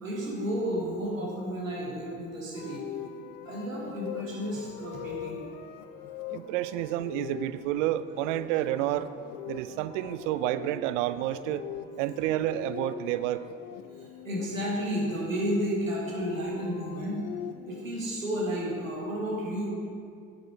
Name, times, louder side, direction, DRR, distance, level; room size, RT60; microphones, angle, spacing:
voice 1, 0.0-2.8 3.4-5.4 14.0-17.2 17.7-19.7, equal, 90° right, -4 dB, 1.3 m, -32 dB
sound 1, 2.5-14.5 15.6-17.8, left 9 dB, 70° left, 0.6 m, -42 dB
voice 2, 6.3-9.1 9.5-11.6 12.0-13.4, right 13 dB, 70° right, 14 dB, 0.5 m, -29 dB
7.9 x 7.8 x 4.5 m, 2.3 s
figure-of-eight pair, 50°, 39 cm